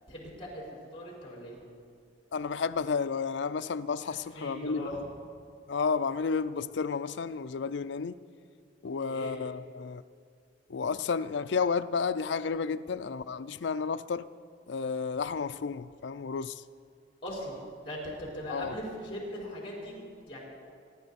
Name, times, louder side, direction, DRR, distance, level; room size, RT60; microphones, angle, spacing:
voice 1, 0.1-0.6 0.9-1.6 4.0-5.0 9.1-9.3 17.2-20.4, equal, 30° left, 4.9 m, -40 dB
voice 2, 2.3-5.1 5.7-8.2 8.8-10.0 10.7-14.3 14.7-16.6 18.5-18.7, left 5 dB, 70° left, 0.4 m, -32 dB
25.0 x 12.0 x 4.2 m
head